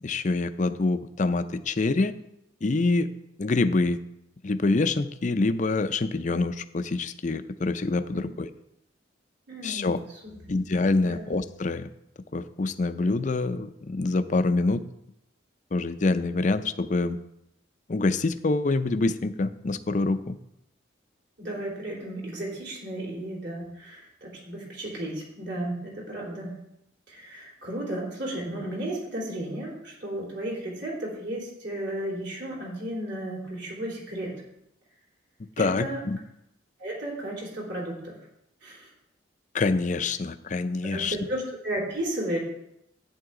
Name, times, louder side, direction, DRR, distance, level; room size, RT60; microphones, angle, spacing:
voice 1, 0.0-2.1 2.6-3.1 3.4-4.0 4.4-8.5 9.6-10.0 10.5-11.9 12.3-14.8 15.7-17.2 17.9-20.4 35.6-36.2 39.5-41.2, left 3 dB, 40° left, 11 dB, 0.5 m, -26 dB
voice 2, 9.5-9.9 10.2-10.3 11.0-11.3 21.4-26.5 27.1-34.3 35.6-36.0 36.8-38.2 38.6-38.9 40.9-42.4, right 1 dB, 65° right, -4 dB, 3.9 m, -34 dB
11.0 x 9.5 x 3.8 m, 0.80 s
head